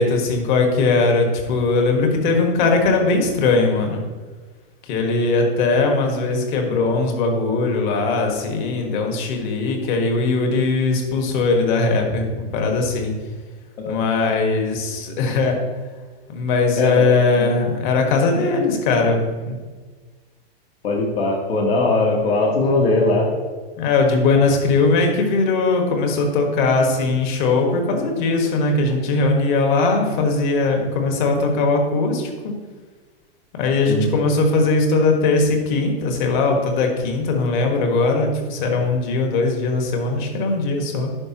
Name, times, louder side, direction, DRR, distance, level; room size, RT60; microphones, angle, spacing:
voice 1, 0.0-4.0 4.9-13.1 13.9-15.6 16.3-19.2 19.5-19.6 23.8-32.5 33.5-41.1, left 3 dB, 55° left, 3 dB, 1.6 m, -20 dB
voice 2, 16.8-17.5 20.8-23.3 33.9-34.1, left 2 dB, 85° left, 0 dB, 1.7 m, -20 dB
10.5 x 4.8 x 3.0 m, 1.4 s
hypercardioid pair, 140°, 30 cm